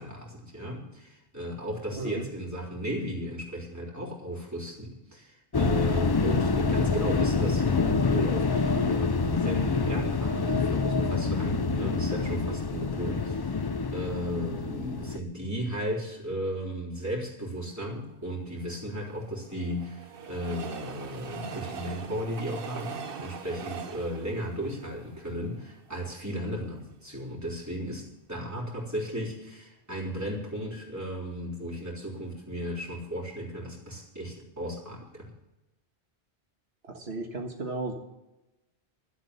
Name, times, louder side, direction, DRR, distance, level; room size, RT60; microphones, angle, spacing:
voice 1, 0.0-35.3, equal, 15° right, -4 dB, 3.7 m, -35 dB
sound 1, 5.5-15.2, left 4 dB, 35° left, 0.4 m, -26 dB
Train, 18.7-26.0 26.5-26.6 26.8-26.9, right 6 dB, 60° right, 1.1 m, -42 dB
voice 2, 36.9-37.9, right 3 dB, 75° right, 1 dB, 1.7 m, -34 dB
12.5 x 8.1 x 8.1 m, 0.95 s
omnidirectional pair, 1.1 m